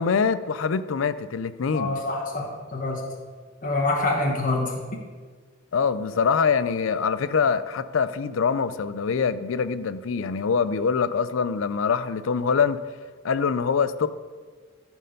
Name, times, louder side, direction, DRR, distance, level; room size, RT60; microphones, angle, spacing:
voice 1, 0.0-2.0 5.7-12.8 13.2-14.1, left 5 dB, 80° left, 14 dB, 0.5 m, -24 dB
voice 2, 1.7-3.0 3.6-5.0, left 2 dB, 40° left, 0 dB, 1.0 m, -26 dB
13.5 x 4.5 x 5.3 m, 1.5 s
head